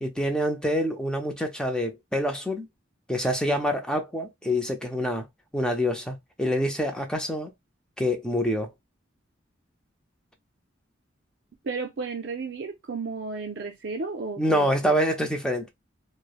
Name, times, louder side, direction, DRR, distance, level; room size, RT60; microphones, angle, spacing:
voice 1, 0.0-2.7 3.1-5.2 5.5-7.5 8.0-8.7 14.4-15.7, equal, 5° left, 0.5 m, -26 dB
voice 2, 11.6-14.9, right 4 dB, 60° right, 0.4 m, -33 dB
3.0 x 2.0 x 2.3 m
head